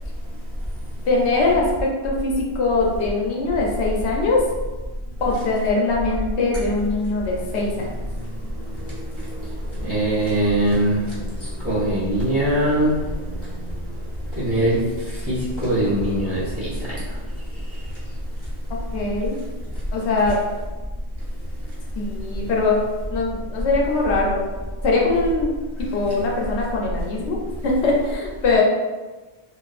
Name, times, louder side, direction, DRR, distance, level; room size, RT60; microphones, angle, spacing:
voice 1, 1.1-4.4 5.2-7.7 18.9-19.4 19.9-20.4 22.0-22.8 23.1-24.4 24.8-25.5 25.9-28.6, left 3 dB, 85° left, -2 dB, 0.9 m, -22 dB
voice 2, 9.8-11.0 11.6-13.0 14.4-14.8 15.3-16.7, right 1 dB, 15° right, -10 dB, 0.8 m, -21 dB
2.5 x 2.3 x 2.3 m, 1.2 s
omnidirectional pair, 1.1 m